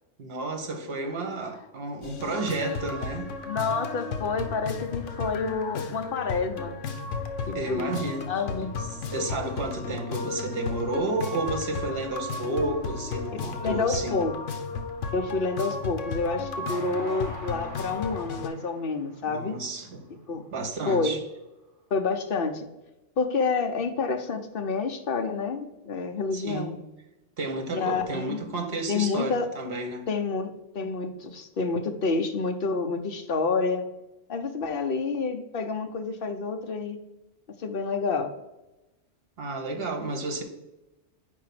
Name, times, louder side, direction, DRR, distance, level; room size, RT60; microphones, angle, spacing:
voice 1, 0.2-3.3 7.5-8.3 8.9-14.2 19.2-20.1 20.5-21.2 26.3-26.7 27.4-30.1 39.4-40.4, right 2 dB, 55° right, 1.2 m, -31 dB
sound 1, 2.0-18.5, left 4 dB, 80° left, 1.1 m, -34 dB
voice 2, 3.5-6.8 7.5-7.9 8.3-8.7 13.3-14.3 15.1-19.5 20.3-20.4 20.8-21.2 21.9-22.7 23.2-26.8 27.7-28.4 28.9-29.5 30.1-33.8 34.3-37.0 37.6-38.3, left 4 dB, 55° left, 0.9 m, -28 dB
Train, 16.7-20.1 20.6-20.7 21.0-21.1, right 1 dB, 15° right, 1.4 m, -46 dB
4.9 x 4.7 x 5.8 m
omnidirectional pair, 1.2 m